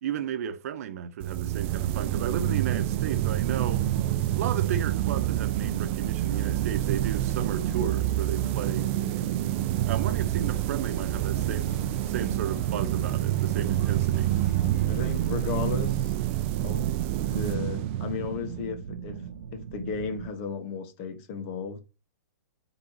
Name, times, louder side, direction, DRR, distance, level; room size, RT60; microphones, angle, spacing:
voice 1, 0.0-3.8 4.3-8.9 9.9-14.3, right 8 dB, 60° right, 1.0 m, -33 dB
sound 1, 1.2-18.7, right 14 dB, 45° right, 0.6 m, -27 dB
sound 2, 1.6-20.3, right 6 dB, 85° right, 1.0 m, -40 dB
sound 3, 6.2-15.8, left 6 dB, 75° left, 1.7 m, -50 dB
voice 2, 14.8-16.1 16.6-16.9 17.3-19.2 19.5-21.8, left 5 dB, 40° left, 1.5 m, -34 dB
9.7 x 3.9 x 2.9 m
hypercardioid pair, 135°, 9 cm